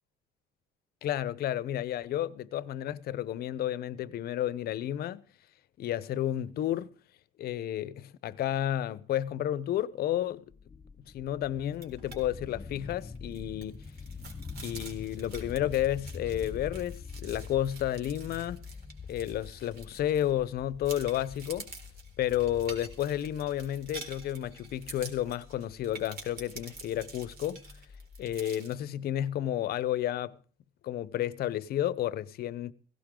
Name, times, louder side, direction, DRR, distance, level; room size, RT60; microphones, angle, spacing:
voice 1, 1.0-5.3 5.8-6.9 7.4-10.4 11.1-13.8 14.6-18.7 19.1-21.7 22.2-27.6 28.2-30.3 30.8-32.7, left 12 dB, 55° left, 0.8 m, -31 dB
sound 1, 10.5-28.4, left 5 dB, 15° left, 0.7 m, -45 dB
sound 2, 11.7-12.2 12.5-12.6 13.0-20.5 20.8-28.7, right 4 dB, 55° right, 4.0 m, -48 dB
17.0 x 16.5 x 3.8 m
cardioid pair, 135°, 19 cm